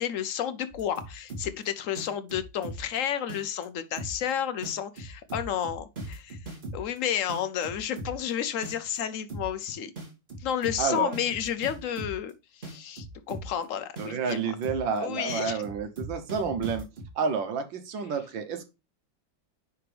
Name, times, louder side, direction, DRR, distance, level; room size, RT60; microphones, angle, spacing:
voice 1, 0.0-6.4 6.7-9.9 10.4-14.5 15.0-15.6, left 9 dB, 75° left, 0.7 m, -31 dB
sound 1, 0.7-1.6 2.0-3.0 3.3-3.6 4.0-4.3 4.6-7.0 7.3-8.3 8.6-9.0 9.3-9.6 10.0-12.3 12.6-13.6 14.0-14.3 14.6-15.0 15.3-17.1, right 2 dB, 25° right, 2.2 m, -39 dB
voice 2, 10.8-11.1 14.0-16.9 17.2-18.7, right 6 dB, 75° right, 1.8 m, -30 dB
10.5 x 3.5 x 3.3 m
omnidirectional pair, 2.1 m